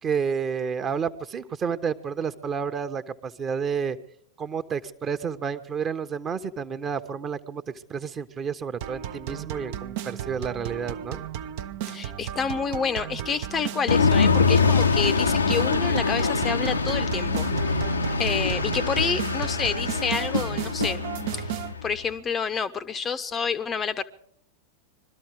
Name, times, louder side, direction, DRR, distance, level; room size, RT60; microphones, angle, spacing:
voice 1, 0.0-4.0 4.4-7.6 7.9-11.2, right 6 dB, 25° right, 1.1 m, -30 dB
sound 1, 8.8-21.7, right 10 dB, 50° right, 0.8 m, -35 dB
voice 2, 11.9-17.8 18.2-21.1 21.3-24.0, left 6 dB, 20° left, 0.8 m, -29 dB
sound 2, 13.9-21.9, left 4 dB, 80° left, 0.9 m, -24 dB
22.0 x 13.0 x 4.8 m
figure-of-eight pair, 90°, 0 cm